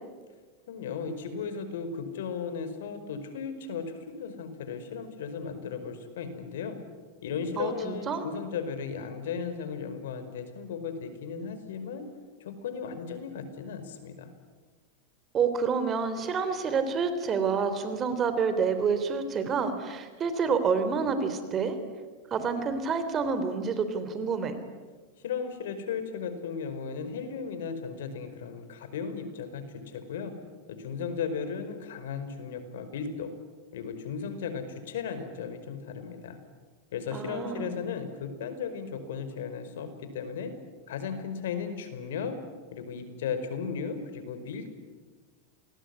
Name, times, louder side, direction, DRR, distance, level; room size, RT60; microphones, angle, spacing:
voice 1, 0.7-6.8 7.2-12.1 12.4-14.3 25.2-30.3 30.7-33.3 33.7-36.4 36.9-40.5 40.9-42.3 42.7-44.7, left 6 dB, 85° left, 9 dB, 5.1 m, -36 dB
voice 2, 7.6-8.2 15.3-21.8 22.3-24.6 37.1-37.7, right 5 dB, 25° right, 10 dB, 3.7 m, -28 dB
29.0 x 21.0 x 9.8 m, 1.4 s
supercardioid pair, 145°, 0 cm